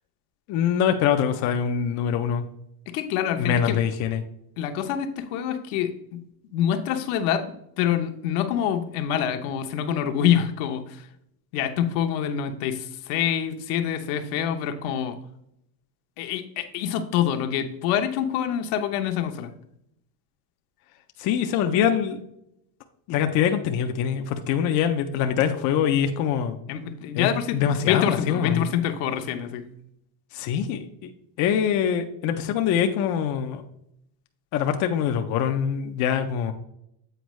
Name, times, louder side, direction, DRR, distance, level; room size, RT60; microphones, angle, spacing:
voice 1, 0.5-2.4 3.4-4.2 21.2-22.2 23.1-26.6 27.1-28.7 30.3-31.1 31.4-33.6 34.5-36.5, left 8 dB, 40° left, 5 dB, 0.4 m, -24 dB
voice 2, 2.9-3.8 4.6-6.2 6.5-11.1 11.5-15.2 16.2-19.5 26.7-29.7, left 9 dB, 65° left, 7 dB, 0.8 m, -26 dB
7.9 x 4.4 x 3.0 m, 0.77 s
cardioid pair, 145°, 47 cm